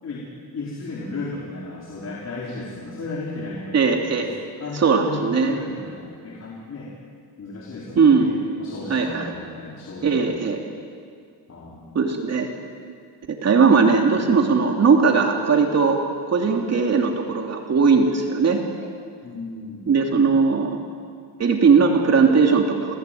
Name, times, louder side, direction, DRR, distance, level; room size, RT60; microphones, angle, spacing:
voice 1, 0.5-3.9 4.2-4.3 4.6-6.9 7.4-8.3 8.6-10.6 11.5-12.0 19.2-19.9, left 3 dB, 40° left, -4 dB, 4.8 m, -34 dB
voice 2, 3.7-4.3 4.7-5.5 7.9-8.3 8.9-9.3 10.0-10.6 11.9-12.5 13.3-16.0 16.3-18.9 19.9-20.8 21.4-22.9, right 5 dB, 40° right, 2 dB, 3.1 m, -19 dB
28.0 x 19.0 x 9.4 m, 2.2 s
cardioid pair, 110°, 40 cm